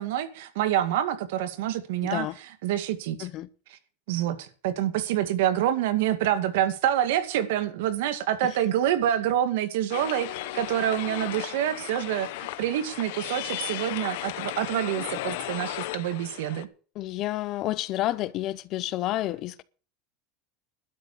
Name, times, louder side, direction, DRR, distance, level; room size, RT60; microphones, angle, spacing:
voice 1, 0.0-2.3 2.6-3.3 3.7-3.8 4.1-16.7, right 11 dB, 80° right, 2.1 m, -27 dB
voice 2, 2.0-2.4 3.2-3.5 8.4-8.5 17.0-19.6, left 15 dB, 40° left, 0.7 m, -30 dB
sound 1, 9.9-16.6, left 17 dB, 70° left, 0.9 m, -35 dB
12.0 x 7.3 x 8.4 m
supercardioid pair, 165°, 0 cm